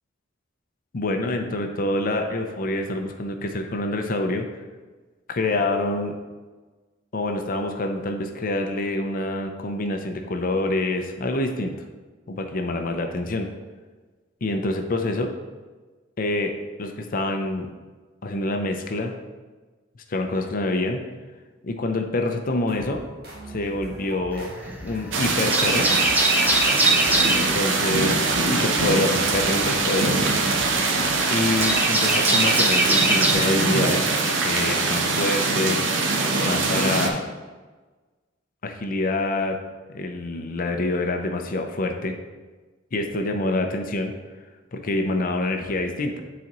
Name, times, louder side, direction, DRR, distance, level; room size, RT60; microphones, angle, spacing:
voice 1, 0.9-4.5 5.3-6.2 7.1-11.7 12.3-13.5 14.4-15.3 16.2-16.5 16.8-17.7 18.2-19.1 20.1-21.0 21.6-23.0 23.5-24.5 24.8-25.9 27.3-30.3 31.3-34.2 34.4-35.8 36.4-37.2 38.6-39.6 39.9-42.1 42.9-44.1 44.7-46.2, left 2 dB, 50° left, 4 dB, 0.6 m, -26 dB
sound 1, 22.7-32.2, right 2 dB, 55° right, 1.5 m, -40 dB
sound 2, 24.3-25.0 25.3-27.5 29.1-33.3, right 2 dB, 10° right, 0.7 m, -22 dB
sound 3, 25.1-37.1, right 3 dB, 80° right, 0.7 m, -23 dB
9.8 x 4.1 x 3.0 m, 1.3 s
head